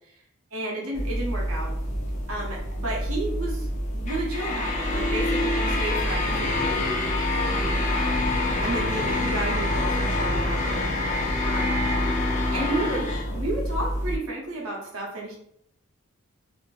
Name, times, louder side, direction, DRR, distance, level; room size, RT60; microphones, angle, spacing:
voice 1, 0.5-1.7 2.3-3.7 3.9-10.9 11.4-11.8 12.5-15.4, right 1 dB, 80° right, -2 dB, 0.8 m, -32 dB
sound 1, 0.9-14.2, left 1 dB, 35° left, 0.4 m, -26 dB
2.5 x 2.4 x 2.3 m, 0.72 s
head